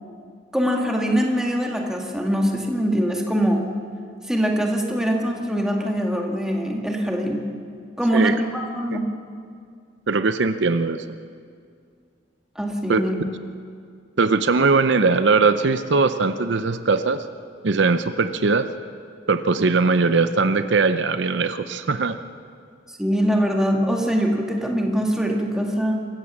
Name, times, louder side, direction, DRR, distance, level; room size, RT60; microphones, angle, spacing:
voice 1, 0.5-3.6 4.3-7.5 8.0-9.0 12.6-13.2 23.0-26.0, equal, 5° right, 0 dB, 2.0 m, -23 dB
voice 2, 10.1-11.0 12.9-13.0 13.3-13.4 14.2-17.3 17.6-18.7 19.3-22.2, right 4 dB, 65° right, 10 dB, 0.6 m, -20 dB
25.0 x 15.5 x 7.3 m, 2.3 s
head